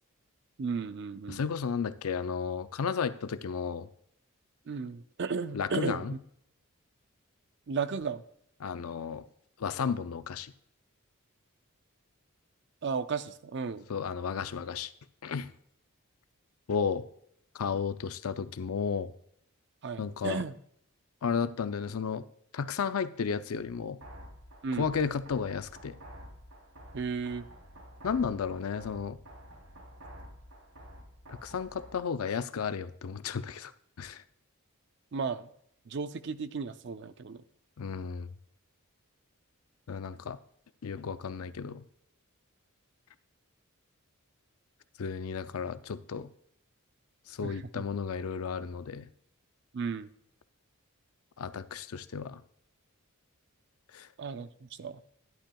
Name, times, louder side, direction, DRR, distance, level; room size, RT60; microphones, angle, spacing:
voice 1, 0.6-1.4 4.7-6.2 7.7-8.2 12.8-13.9 19.8-20.5 24.6-24.9 26.9-27.5 35.1-35.5 35.9-37.4 47.4-47.8 49.7-50.1 54.2-55.0, right 5 dB, 55° right, 12 dB, 0.5 m, -34 dB
voice 2, 1.3-3.9 5.5-6.2 8.6-9.3 9.6-10.5 13.9-14.9 15.2-15.5 16.7-17.0 17.5-19.1 20.0-20.4 21.2-22.2 22.5-24.0 24.8-26.0 28.0-29.2 31.3-33.7 34.0-34.2 37.8-38.3 39.9-40.4 40.8-41.8 45.0-46.3 47.3-49.1 51.4-52.4 53.9-54.1, left 6 dB, 80° left, 13 dB, 0.5 m, -33 dB
sound 1, 24.0-32.0, equal, 80° right, 3.2 m, -50 dB
11.5 x 10.0 x 2.3 m, 0.70 s
head